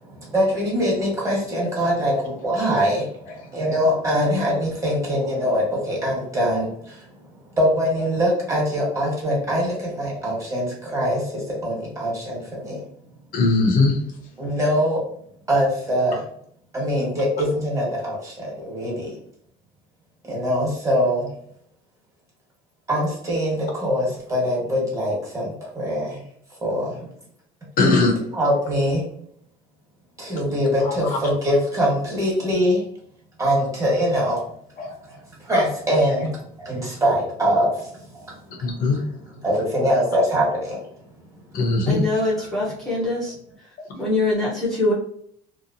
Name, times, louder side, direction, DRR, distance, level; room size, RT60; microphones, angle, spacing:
voice 1, 0.0-7.1 7.6-12.8 14.4-15.0 15.5-16.2 16.7-19.1 20.3-21.3 22.9-26.2 26.6-27.1 28.3-29.0 30.2-32.8 33.4-34.4 35.1-36.3 36.6-37.9 38.1-38.2 38.5-38.8 39.4-40.8, equal, 20° right, -3 dB, 1.3 m, -23 dB
voice 2, 13.3-14.0 27.8-28.3 30.8-30.9 34.8-35.0 36.1-36.2 37.7-37.8 38.6-39.0 41.5-42.0, left 3 dB, 55° left, 2 dB, 0.8 m, -20 dB
voice 3, 41.9-43.3 44.0-44.9, left 2 dB, ahead, -7 dB, 0.8 m, -23 dB
2.8 x 2.0 x 2.6 m, 0.66 s
cardioid pair, 110°, 17 cm